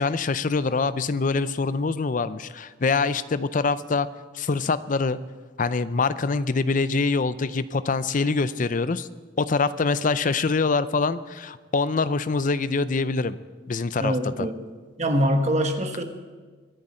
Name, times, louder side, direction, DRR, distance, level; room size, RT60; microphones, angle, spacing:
voice 1, 0.0-4.1 4.3-5.2 5.6-9.1 9.4-13.4 13.7-14.5, left 4 dB, 40° left, 14 dB, 0.5 m, -24 dB
voice 2, 14.0-14.5 15.0-16.0, equal, 35° right, 5 dB, 1.3 m, -23 dB
23.5 x 10.0 x 4.3 m, 1.4 s
head